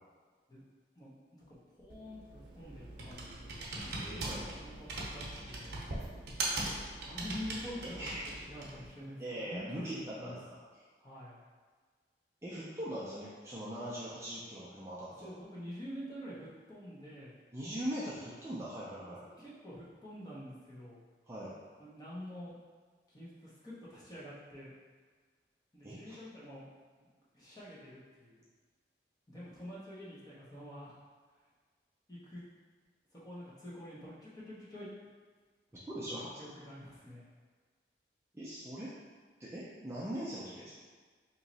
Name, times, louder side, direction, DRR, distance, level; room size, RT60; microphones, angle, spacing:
voice 1, 1.0-4.7 5.0-5.8 6.9-8.1 8.4-10.4 11.0-11.4 15.2-17.3 19.4-21.0 21.8-22.6 23.1-24.7 25.7-26.7 27.3-28.4 29.3-30.9 32.1-32.4 33.1-34.9 36.1-37.2, equal, 20° left, -8 dB, 0.9 m, -47 dB
Computer keyboard, 1.9-8.9, right 2 dB, 70° right, 0.7 m, -40 dB
voice 2, 4.0-4.5 7.8-8.2 9.2-10.4 12.4-15.3 17.5-19.2 21.3-21.5 25.8-26.2 35.7-36.4 38.3-38.9 39.4-40.7, equal, 15° right, -8 dB, 0.5 m, -41 dB
3.0 x 2.8 x 4.0 m, 1.5 s
head